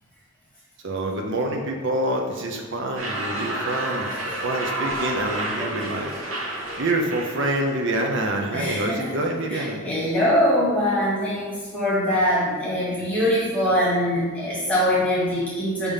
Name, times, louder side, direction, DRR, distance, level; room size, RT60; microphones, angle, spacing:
voice 1, 0.8-4.1 4.4-6.1 6.7-9.8, right 1 dB, 60° right, 2 dB, 0.7 m, -26 dB
sound 1, 3.0-8.3, right 1 dB, 75° right, 1.1 m, -30 dB
voice 2, 8.5-9.2 9.5-15.9, equal, 5° left, -9 dB, 1.9 m, -23 dB
6.1 x 3.5 x 5.5 m, 1.5 s
head